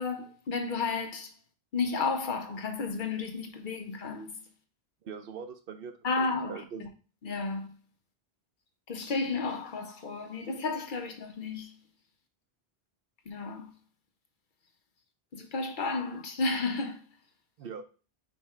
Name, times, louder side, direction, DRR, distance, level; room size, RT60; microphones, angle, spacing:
voice 1, 0.0-1.3 1.7-4.4 6.0-6.9 7.2-7.7 8.9-11.8 13.3-13.7 15.3-17.0, left 4 dB, 55° left, 0.7 m, -32 dB
voice 2, 5.0-6.9 17.6-17.8, right 6 dB, 65° right, 0.7 m, -42 dB
5.6 x 2.2 x 4.2 m
omnidirectional pair, 1.1 m